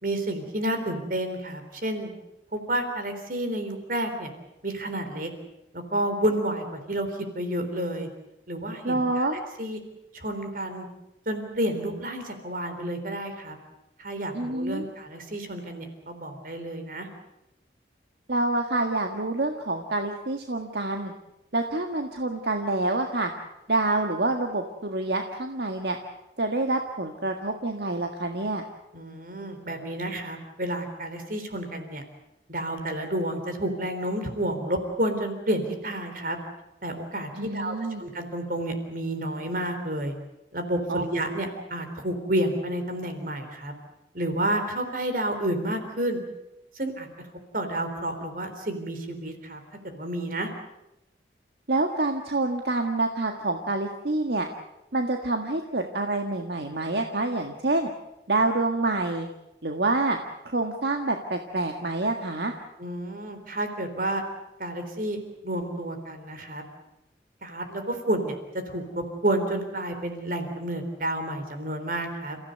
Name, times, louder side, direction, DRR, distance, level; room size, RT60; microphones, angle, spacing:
voice 1, 0.0-2.1 2.5-4.3 4.6-5.3 5.7-8.1 8.5-9.8 10.1-10.9 11.3-13.6 14.0-17.1 28.9-32.0 32.5-36.4 36.8-40.1 40.5-43.7 44.1-46.2 46.7-47.1 47.5-49.6 49.8-50.5 62.8-64.2 64.6-66.6 67.4-72.4, right 1 dB, 50° right, 7 dB, 3.8 m, -30 dB
voice 2, 8.8-9.4 14.3-14.8 18.3-21.1 21.5-23.3 23.7-26.0 26.4-28.6 37.4-38.0 40.9-41.0 41.6-41.7 51.7-54.5 54.9-57.9 58.3-59.3 59.6-60.2 60.4-62.5, right 2 dB, 70° right, 4 dB, 1.7 m, -27 dB
29.5 x 15.5 x 8.1 m, 0.92 s
head